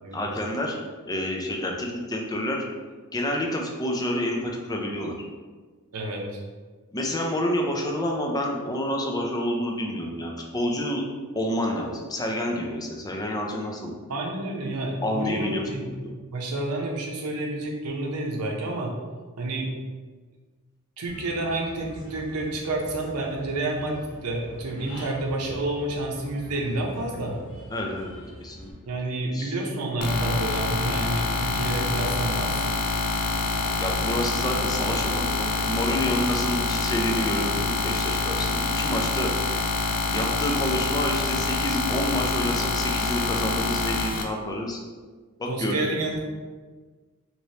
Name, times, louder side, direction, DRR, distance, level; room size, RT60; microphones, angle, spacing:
voice 1, 0.1-0.8 1.1-2.6 3.1-5.2 6.9-11.0 11.4-13.9 15.0-16.1 27.7-28.7 29.3-29.5 33.8-39.3 40.1-44.8 45.4-45.9, left 1 dB, 15° left, 0 dB, 0.4 m, -28 dB
voice 2, 5.9-6.4 14.1-15.9 16.3-18.9 19.4-19.7 21.0-27.3 28.8-32.6 36.4-36.5 45.5-46.2, right 2 dB, 85° right, 0 dB, 0.7 m, -29 dB
Human voice / Bird, 21.1-28.7, equal, 60° left, 1.2 m, -45 dB
sound 1, 30.0-44.2, left 3 dB, 85° left, 0.4 m, -26 dB
3.2 x 2.9 x 2.7 m, 1.4 s
head